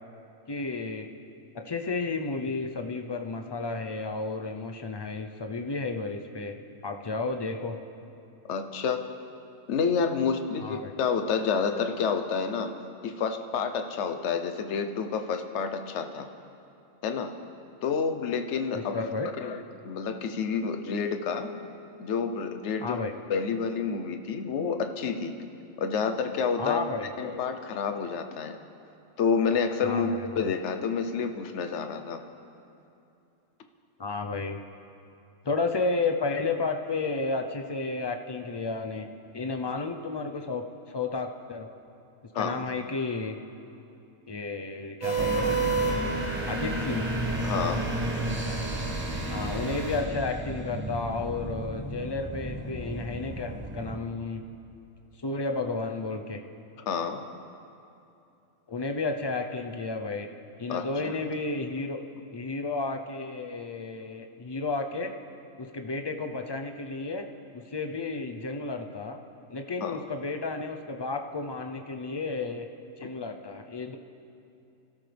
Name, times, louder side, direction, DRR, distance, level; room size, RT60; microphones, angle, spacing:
voice 1, 0.5-1.1 1.5-6.6 6.8-7.8 10.6-10.9 18.7-19.3 22.8-23.1 26.6-27.1 29.8-30.3 34.0-34.6 35.4-39.1 39.3-41.7 42.4-43.4 44.3-45.6 46.5-47.1 49.3-54.4 55.2-56.4 58.7-60.3 60.6-62.0 62.3-65.1 65.6-67.2 67.5-69.2 69.5-72.7 73.0-74.0, left 3 dB, 35° left, 4 dB, 0.4 m, -32 dB
voice 2, 8.5-9.1 9.7-12.8 13.0-16.3 17.0-17.3 17.8-19.1 19.4-21.5 22.0-23.0 23.3-25.3 25.8-26.8 27.2-28.6 29.2-30.1 30.4-32.2 42.3-42.6 47.4-47.8 56.9-57.2 60.7-61.1 69.8-70.0, left 6 dB, 55° left, 7 dB, 1.1 m, -29 dB
sound 1, 45.0-50.0, right 4 dB, 85° right, 3.2 m, -32 dB
sound 2, 45.2-54.0, right 1 dB, 10° right, 0.8 m, -33 dB
27.5 x 13.0 x 3.4 m, 2.7 s
omnidirectional pair, 1.5 m